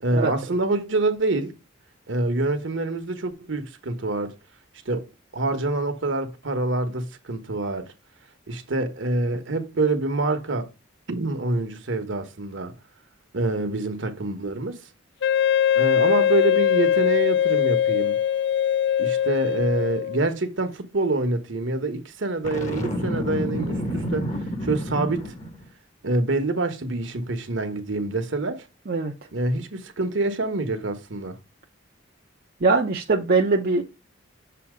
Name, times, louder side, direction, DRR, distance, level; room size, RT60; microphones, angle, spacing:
voice 1, 0.0-1.5 2.1-4.3 4.9-5.1 5.3-7.9 8.5-10.7 11.1-12.7 13.3-14.8 15.8-18.2 19.0-24.3 24.6-25.3 26.0-28.7 29.3-31.4, right 2 dB, 65° right, 1.2 m, -26 dB
Wind instrument woodwind instrument, 15.2-20.3, left 9 dB, 60° left, 0.3 m, -21 dB
Boom, 22.4-25.6, equal, 40° left, 1.3 m, -29 dB
voice 2, 32.6-33.8, right 3 dB, 50° right, 0.7 m, -21 dB
6.9 x 2.8 x 5.0 m
head